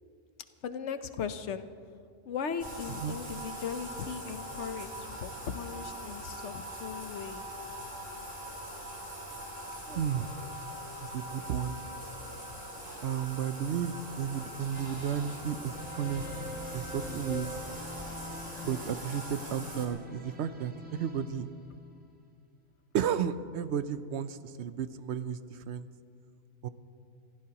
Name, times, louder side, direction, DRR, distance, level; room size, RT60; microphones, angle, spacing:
voice 1, 0.6-1.7 2.2-7.5 9.9-10.0, left 7 dB, 70° left, 10 dB, 1.0 m, -38 dB
Bathtub (filling or washing), 2.6-19.9, equal, 35° right, 2.9 m, -42 dB
voice 2, 9.9-10.4 11.0-11.8 13.0-16.3 16.7-17.5 18.6-21.5 22.9-25.9 26.6-26.7, right 8 dB, 70° right, 12 dB, 0.8 m, -33 dB
sound 1, 14.7-22.2, left 1 dB, 10° right, 1.2 m, -45 dB
27.5 x 15.5 x 2.9 m, 2.3 s
omnidirectional pair, 1.3 m